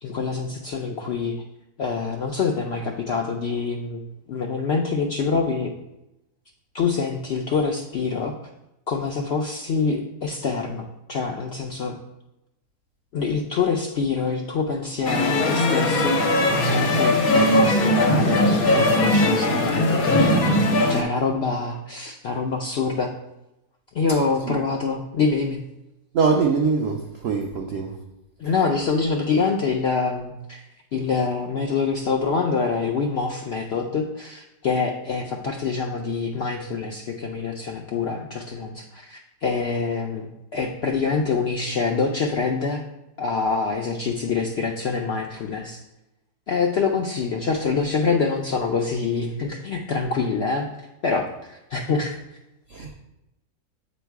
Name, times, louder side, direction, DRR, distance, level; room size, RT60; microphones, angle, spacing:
voice 1, 0.0-1.3 1.8-4.0 4.3-5.7 6.7-8.3 8.9-12.0 13.1-16.2 16.6-20.4 20.9-23.1 23.9-25.6 28.4-30.6 30.9-42.8 43.2-45.8 46.5-52.2, left 4 dB, 85° left, 1 dB, 0.5 m, -25 dB
sound 1, 15.0-21.0, left 1 dB, 65° left, 1.3 m, -19 dB
voice 2, 26.1-27.9 52.7-52.9, right 5 dB, 80° right, 2 dB, 0.5 m, -23 dB
7.9 x 3.1 x 4.5 m, 0.92 s
omnidirectional pair, 1.7 m